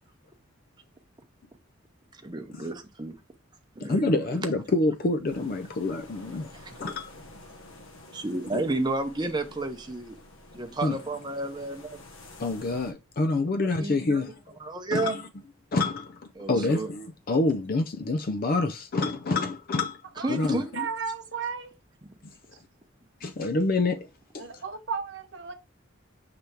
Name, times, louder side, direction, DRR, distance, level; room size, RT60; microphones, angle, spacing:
voice 1, 2.1-3.2 3.8-4.1 8.1-10.2 10.5-12.0 13.8-14.2 14.6-15.2 16.4-16.9 20.2-20.7 22.0-22.1, right 2 dB, 20° right, 0.8 m, -31 dB
voice 2, 3.8-6.5 6.8-7.1 8.5-8.6 10.8-11.0 12.4-14.6 14.9-15.2 15.7-20.8 23.2-24.6, left 2 dB, 45° left, 0.4 m, -27 dB
sound 1, 5.2-12.9, left 2 dB, 80° left, 1.2 m, -49 dB
voice 3, 20.2-21.7 24.4-25.5, right 6 dB, 60° right, 0.8 m, -34 dB
6.6 x 3.5 x 4.4 m
head